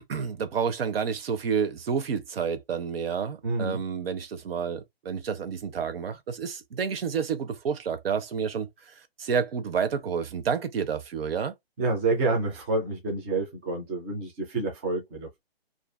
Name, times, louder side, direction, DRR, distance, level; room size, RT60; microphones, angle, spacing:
voice 1, 0.1-11.5, right 6 dB, 70° right, 0.7 m, -29 dB
voice 2, 3.4-3.8 11.8-15.4, right 3 dB, 15° right, 0.4 m, -28 dB
2.5 x 2.4 x 2.2 m
hypercardioid pair, 140°, 31 cm